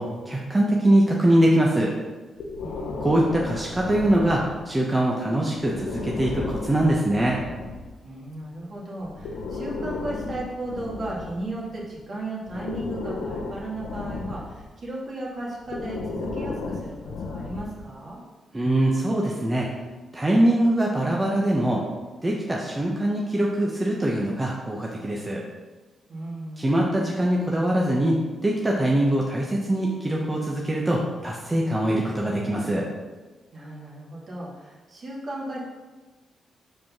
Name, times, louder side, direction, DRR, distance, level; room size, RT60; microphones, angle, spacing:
voice 1, 0.0-1.9 3.0-7.4 18.5-19.7 20.1-21.8 22.2-25.4 26.6-32.9, right 1 dB, 20° right, -3 dB, 1.2 m, -23 dB
Breathing, 2.4-4.8 5.6-7.9 9.0-11.9 12.5-14.7 15.6-17.9, left 3 dB, 80° left, 0.9 m, -34 dB
voice 2, 2.6-3.3 8.0-18.2 26.1-26.8 33.5-35.6, right 1 dB, 50° right, -4 dB, 2.4 m, -35 dB
5.1 x 4.9 x 5.9 m, 1.3 s
cardioid pair, 60°, 0 cm